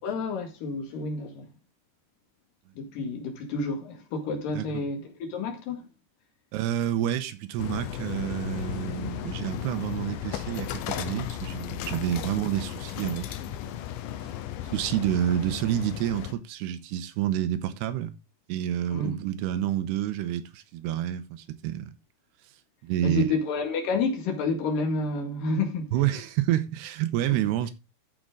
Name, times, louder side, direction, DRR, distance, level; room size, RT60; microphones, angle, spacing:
voice 1, 0.0-1.5 2.7-5.9 18.9-19.1 23.0-25.9 27.3-27.5, left 3 dB, 60° left, 3.4 m, -30 dB
voice 2, 6.5-13.3 14.7-18.1 18.5-21.9 22.8-23.3 25.9-27.7, right 12 dB, 85° right, 2.9 m, -28 dB
sound 1, 7.6-16.3, left 11 dB, 75° left, 2.1 m, -35 dB
14.0 x 5.2 x 3.7 m
omnidirectional pair, 4.7 m